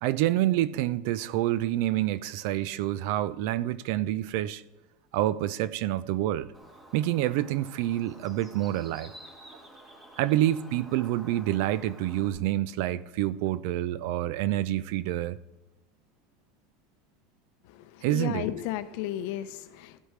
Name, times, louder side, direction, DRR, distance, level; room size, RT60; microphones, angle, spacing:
voice 1, 0.0-4.6 5.1-6.5 6.9-9.1 10.2-15.4 18.0-18.5, right 14 dB, 55° right, 0.4 m, -27 dB
Bird, 6.5-12.3, right 1 dB, 10° right, 1.7 m, -50 dB
voice 2, 17.7-20.0, left 12 dB, 55° left, 0.6 m, -34 dB
15.0 x 8.2 x 3.2 m
supercardioid pair, 175°, 0 cm